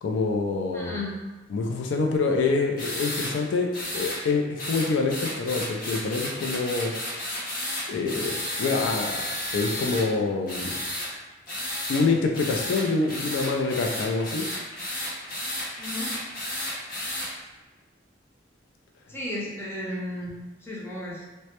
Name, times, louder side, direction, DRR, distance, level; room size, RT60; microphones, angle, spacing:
voice 1, 0.0-1.0 1.5-6.9 7.9-10.8 11.9-14.4, left 3 dB, 90° left, 2 dB, 0.3 m, -26 dB
voice 2, 0.7-1.1 15.8-16.1 19.1-20.3 20.6-21.2, left 1 dB, 15° left, -5 dB, 0.5 m, -34 dB
sound 1, 2.8-3.3 3.7-4.2 4.6-10.0 10.5-11.1 11.5-12.0 12.3-17.3, left 1 dB, 50° left, 0.7 m, -32 dB
2.1 x 2.0 x 2.8 m, 1.2 s
head